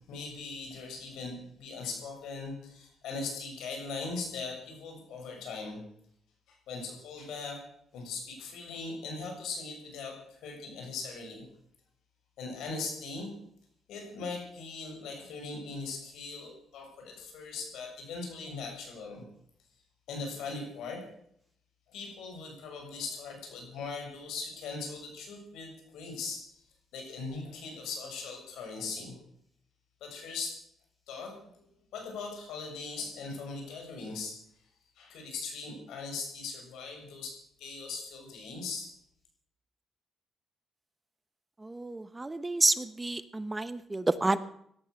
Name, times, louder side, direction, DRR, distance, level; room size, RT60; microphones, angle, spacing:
voice 1, 0.0-5.8 6.5-7.6 7.9-11.5 12.4-13.3 13.9-19.2 20.1-21.0 21.9-26.4 26.9-29.2 30.0-30.6 31.1-31.5 31.9-34.4 35.0-38.9, left 4 dB, 85° left, 2 dB, 6.6 m, -40 dB
voice 2, 41.7-44.4, right 2 dB, 15° right, 14 dB, 1.0 m, -29 dB
17.0 x 12.5 x 6.4 m, 0.69 s
cardioid pair, 90°, 0 cm